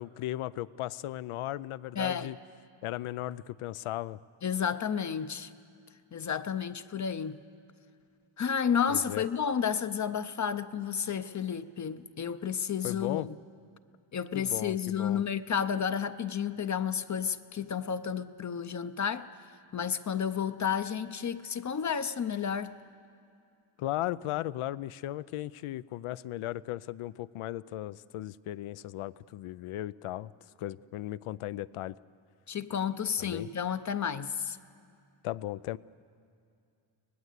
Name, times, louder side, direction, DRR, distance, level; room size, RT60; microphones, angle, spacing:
voice 1, 0.0-2.4 2.8-4.2 8.9-9.3 12.8-13.3 14.3-15.2 23.8-30.3 30.6-32.0 33.2-33.5 35.2-35.8, left 15 dB, 90° left, 0.6 m, -36 dB
voice 2, 2.0-2.3 4.4-5.5 6.1-7.4 8.4-13.3 14.1-19.3 19.7-22.7 32.5-34.6, left 7 dB, 35° left, 0.6 m, -31 dB
24.0 x 18.5 x 8.2 m
cardioid pair, 125°, 49 cm